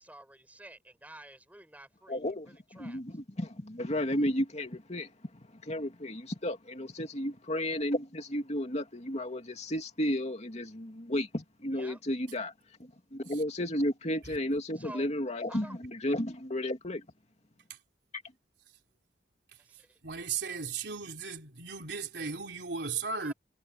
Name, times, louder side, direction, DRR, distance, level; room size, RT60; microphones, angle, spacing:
voice 1, 0.0-3.0 11.7-12.0 14.7-15.1 15.5-15.8 19.6-20.0 23.2-23.3, right 1 dB, 10° right, 5.3 m, -50 dB
voice 2, 2.1-5.1 5.6-12.5 13.1-17.0, left 1 dB, 40° left, 2.6 m, -33 dB
voice 3, 20.0-23.3, right 5 dB, 70° right, 4.0 m, -36 dB
head